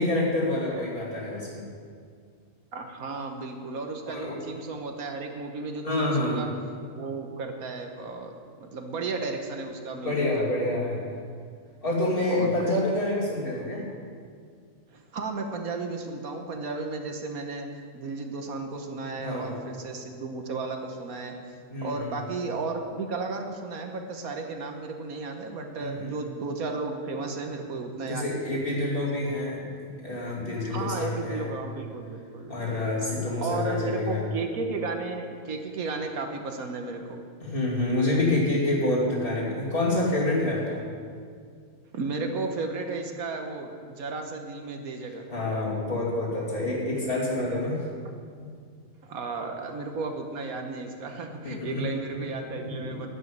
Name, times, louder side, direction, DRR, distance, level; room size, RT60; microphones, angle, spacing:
voice 1, 0.0-1.7 4.0-4.4 5.8-6.5 10.0-11.1 11.8-13.8 19.2-19.6 21.7-22.1 25.8-26.1 28.1-29.6 30.0-31.5 32.5-34.3 37.4-40.8 45.3-47.8 51.4-51.8, left 2 dB, 40° left, -5 dB, 3.0 m, -27 dB
voice 2, 2.7-6.5 6.9-10.3 12.2-12.7 14.9-17.7 17.9-21.4 21.8-28.4 30.7-32.6 33.4-37.2 41.9-45.2 49.0-53.1, right 3 dB, 80° right, 4 dB, 1.6 m, -34 dB
12.5 x 6.3 x 9.4 m, 2.1 s
omnidirectional pair, 1.5 m